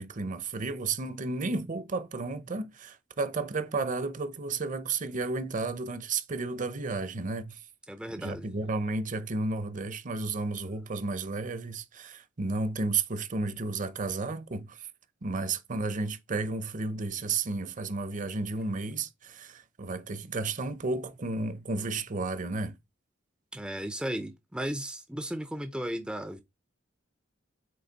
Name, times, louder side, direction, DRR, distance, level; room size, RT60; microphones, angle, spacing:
voice 1, 0.0-7.6 8.2-14.9 15.2-22.8, right 3 dB, 40° right, 0.7 m, -32 dB
voice 2, 7.9-8.5 23.5-26.4, equal, 5° right, 0.5 m, -35 dB
7.7 x 3.2 x 4.0 m
head